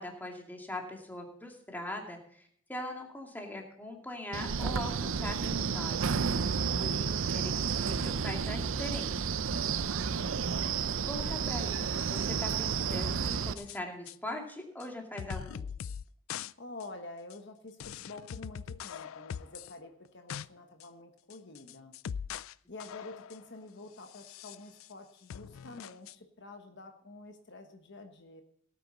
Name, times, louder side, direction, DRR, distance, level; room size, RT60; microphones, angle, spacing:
voice 1, 0.0-6.2 6.8-9.1 11.0-15.6, left 1 dB, 10° left, 1 dB, 2.3 m, -41 dB
Wind, 4.3-13.5, right 6 dB, 75° right, 0.6 m, -31 dB
voice 2, 9.6-10.5 16.6-22.0 22.7-28.4, left 2 dB, 60° left, 5 dB, 1.3 m, -48 dB
sound 1, 13.3-13.8 14.1-14.2 14.8-14.9 15.2-16.0 16.3-16.5 16.8-16.9 17.3-17.4 17.8-19.7 20.1-20.5 20.8-20.9 21.3-22.5 22.8-23.5 24.1-24.9 25.3-26.2, left 8 dB, 85° left, 0.4 m, -42 dB
17.5 x 9.2 x 4.1 m, 0.65 s
head